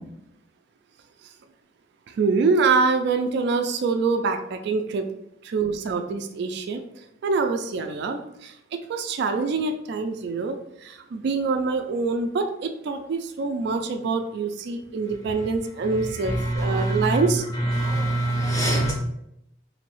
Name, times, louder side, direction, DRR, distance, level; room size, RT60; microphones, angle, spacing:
voice 1, 2.2-5.1 5.4-6.8 7.2-17.5, right 4 dB, 60° right, 6 dB, 0.3 m, -25 dB
voice 2, 16.4-17.2 17.8-18.9, right 1 dB, 15° left, -2 dB, 0.5 m, -24 dB
3.0 x 2.7 x 3.0 m, 0.81 s
head